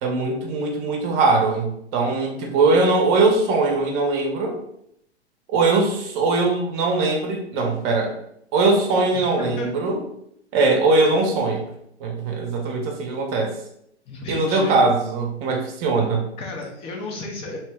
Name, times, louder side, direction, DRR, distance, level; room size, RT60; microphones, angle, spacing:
voice 1, 0.0-4.6 5.5-8.2 8.5-10.0 10.5-11.6 12.0-13.6 14.3-16.3, right 3 dB, 35° right, 2 dB, 0.7 m, -21 dB
voice 2, 9.4-9.7 14.1-14.8 16.4-17.6, left 2 dB, 15° left, 0 dB, 0.4 m, -32 dB
2.8 x 2.0 x 3.3 m, 0.74 s
hypercardioid pair, 120°, 34 cm